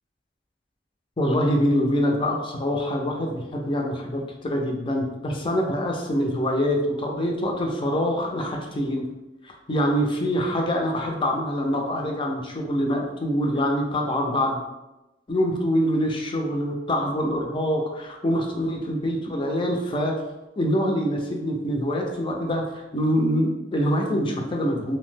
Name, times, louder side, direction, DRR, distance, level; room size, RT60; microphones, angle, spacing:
voice 1, 1.2-9.0 9.4-14.6 15.3-20.1 20.6-25.0, equal, 25° left, 1 dB, 0.4 m, -25 dB
2.6 x 2.0 x 3.2 m, 0.98 s
head